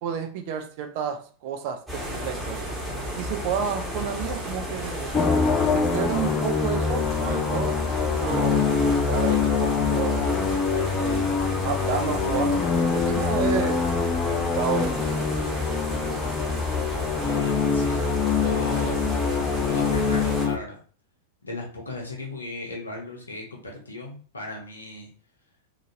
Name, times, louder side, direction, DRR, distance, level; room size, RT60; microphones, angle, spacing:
voice 1, 0.0-2.7 3.1-5.1 5.7-7.7 8.2-10.2 10.7-11.3 11.6-13.8 14.3-15.2, right 7 dB, 50° right, 6 dB, 0.6 m, -31 dB
sound 1, 1.9-20.5, equal, 5° right, 1.2 m, -32 dB
sound 2, 5.1-20.6, left 5 dB, 25° left, 0.4 m, -24 dB
voice 2, 17.2-18.1 18.4-19.1 19.5-20.8 21.4-25.1, left 2 dB, 75° left, 0 dB, 1.0 m, -36 dB
2.9 x 2.6 x 2.7 m, 0.40 s
figure-of-eight pair, 90°, 0 cm